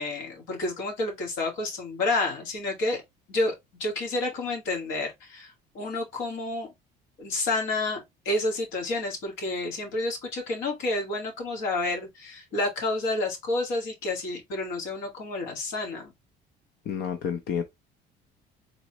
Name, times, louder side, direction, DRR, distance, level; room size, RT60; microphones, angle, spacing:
voice 1, 0.0-3.0 3.3-6.7 7.2-16.1, left 2 dB, 85° left, 2.0 m, -30 dB
voice 2, 16.9-17.6, left 8 dB, 60° left, 0.6 m, -29 dB
3.9 x 3.2 x 2.9 m
cardioid pair, 130°, 19 cm